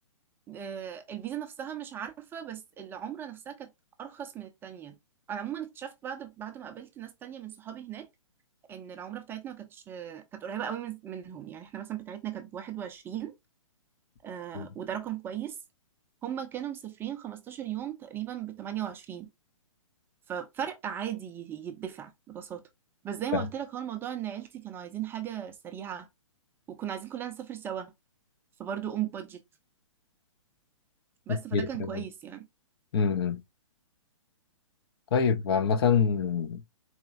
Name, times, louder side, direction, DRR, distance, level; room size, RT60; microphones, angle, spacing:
voice 1, 0.5-3.7 4.0-5.0 5.3-8.1 8.7-13.3 14.2-15.6 16.2-19.3 20.3-22.6 23.0-26.1 26.7-27.9 28.6-29.4 31.3-32.5, right 10 dB, 15° right, 0.4 m, -37 dB
voice 2, 31.5-32.0 32.9-33.4 35.1-36.6, left 6 dB, 50° left, 0.6 m, -26 dB
4.2 x 3.0 x 2.4 m
figure-of-eight pair, 130°, 17 cm